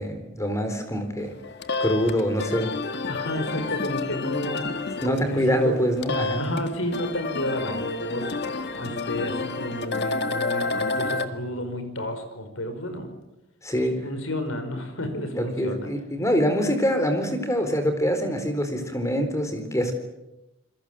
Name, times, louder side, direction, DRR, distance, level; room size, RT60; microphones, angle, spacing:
voice 1, 0.0-1.3 1.8-2.7 4.3-4.4 5.0-6.5 13.6-14.0 15.3-19.9, equal, 15° left, 7 dB, 4.0 m, -25 dB
sound 1, 1.3-11.3, left 3 dB, 55° left, 1.7 m, -30 dB
voice 2, 3.1-4.7 5.0-5.8 6.4-8.3 8.7-13.1 14.0-15.9, left 1 dB, 70° left, 8 dB, 5.1 m, -31 dB
27.5 x 22.0 x 7.7 m, 0.94 s
head